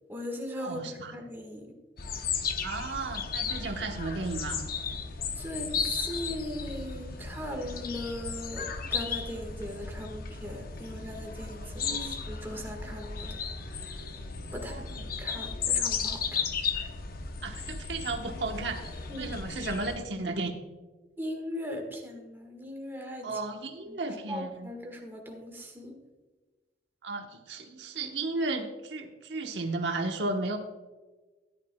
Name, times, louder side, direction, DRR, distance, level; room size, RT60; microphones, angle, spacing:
voice 1, 0.1-1.7 5.4-13.3 13.6-14.1 14.5-14.8 15.2-16.4 19.1-19.4 21.2-23.4 23.9-24.0 24.3-26.0, left 1 dB, 15° right, 1 dB, 1.5 m, -39 dB
voice 2, 0.6-1.1 2.6-4.6 11.6-12.3 14.5-15.1 16.7-16.8 17.4-20.6 23.2-24.7 27.0-30.6, right 3 dB, 85° right, 4 dB, 1.1 m, -34 dB
sound 1, 2.0-20.0, left 5 dB, 55° left, 0.8 m, -35 dB
13.0 x 11.0 x 2.3 m, 1.2 s
head